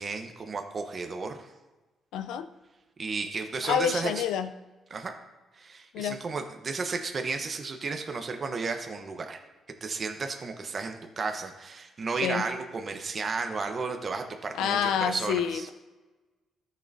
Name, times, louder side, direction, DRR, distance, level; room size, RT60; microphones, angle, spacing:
voice 1, 0.0-1.5 3.0-4.2 4.9-5.1 5.5-9.4 9.8-15.7, right 4 dB, 40° right, 5 dB, 0.9 m, -33 dB
voice 2, 2.1-2.5 3.6-4.5 5.9-6.2 12.2-12.4 14.5-15.7, left 8 dB, 85° left, 10 dB, 0.5 m, -28 dB
14.0 x 6.4 x 2.7 m, 1.2 s
cardioid pair, 90°, 0 cm